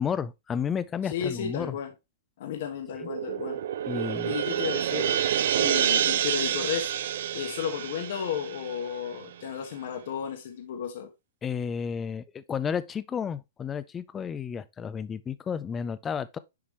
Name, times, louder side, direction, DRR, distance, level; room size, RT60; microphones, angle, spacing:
voice 1, 0.0-1.8 3.0-3.1 3.9-4.4 11.4-16.4, left 7 dB, 20° left, 0.5 m, -32 dB
voice 2, 1.0-1.9 2.4-3.6 4.2-5.2 5.6-11.1, left 8 dB, 60° left, 1.2 m, -33 dB
sound 1, 2.9-9.5, right 10 dB, 65° right, 0.5 m, -28 dB
7.0 x 5.0 x 3.1 m
hypercardioid pair, 130°, 0 cm